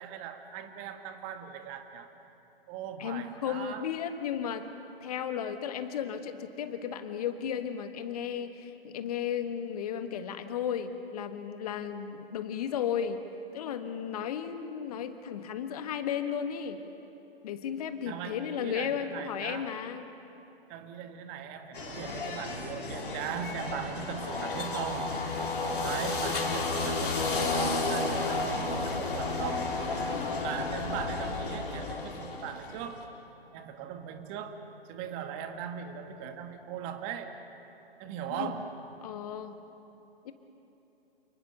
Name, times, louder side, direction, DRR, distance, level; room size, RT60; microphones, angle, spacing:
voice 1, 0.0-2.1 2.7-3.9 18.0-19.7 20.7-25.5 25.8-29.7 30.4-33.1 33.5-37.3 38.0-38.7, right 8 dB, 25° right, 7 dB, 1.7 m, -39 dB
voice 2, 3.0-4.7 5.0-13.2 13.5-16.8 17.4-20.1 38.3-38.5 39.0-39.6 40.2-40.3, left 8 dB, 40° left, 9 dB, 1.6 m, -34 dB
sound 1, 21.7-32.9, left 3 dB, 60° left, 3.9 m, -32 dB
29.0 x 20.0 x 6.8 m, 2.9 s
figure-of-eight pair, 125°, 30 cm